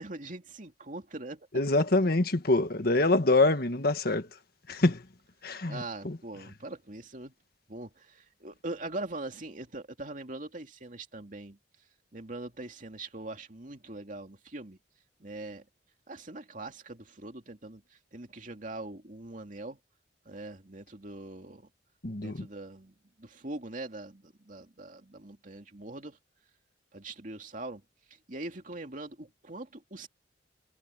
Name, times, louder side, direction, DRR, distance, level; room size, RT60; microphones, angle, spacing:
voice 1, 0.0-1.5 5.7-7.3 7.7-11.6 12.1-14.8 15.2-15.7 16.1-19.8 20.2-21.7 22.2-26.2 26.9-27.8 28.1-30.1, right 2 dB, 45° right, 2.6 m, -42 dB
voice 2, 1.5-4.3 4.7-5.0 5.4-6.2 22.0-22.5, left 2 dB, 55° left, 1.6 m, -25 dB
head